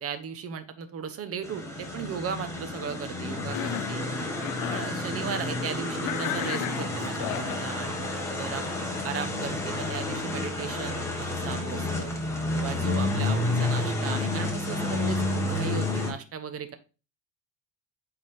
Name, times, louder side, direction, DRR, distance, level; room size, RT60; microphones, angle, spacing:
voice 1, 0.0-4.0 4.7-8.6 9.0-12.1 12.5-16.8, right 7 dB, 40° right, 10 dB, 1.0 m, -36 dB
sound 1, 1.4-16.1, left 2 dB, 10° left, 1.7 m, -30 dB
Cough, 3.4-4.0 4.4-4.9 6.0-7.6, left 16 dB, 75° left, 0.5 m, -34 dB
8.2 x 3.8 x 3.4 m, 0.33 s
cardioid pair, 125°, 34 cm